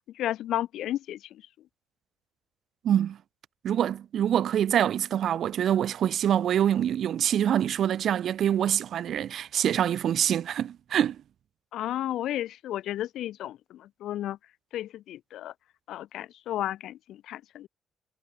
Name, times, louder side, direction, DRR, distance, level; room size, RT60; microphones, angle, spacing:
voice 1, 0.1-1.4 11.7-14.4 14.7-15.5 15.9-17.7, left 13 dB, 80° left, 0.9 m, -33 dB
voice 2, 2.8-3.2 3.6-11.2, right 10 dB, 65° right, 0.3 m, -25 dB
cardioid pair, 90°, 0 cm